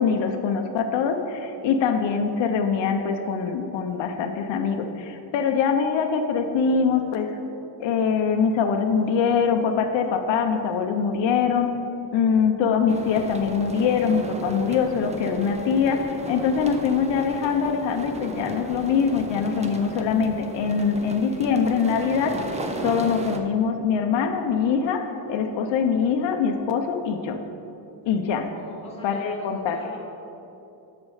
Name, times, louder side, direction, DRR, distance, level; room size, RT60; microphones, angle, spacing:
voice 1, 0.0-7.4 7.8-11.7 12.1-22.4 22.8-27.4 28.1-28.5 29.0-29.8, left 6 dB, 70° left, 5 dB, 0.7 m, -23 dB
sound 1, 12.9-23.4, right 2 dB, 15° right, 0.5 m, -35 dB
voice 2, 28.5-30.0, left 1 dB, 15° left, -6 dB, 1.9 m, -42 dB
12.5 x 4.3 x 4.8 m, 2.9 s
cardioid pair, 140°, 46 cm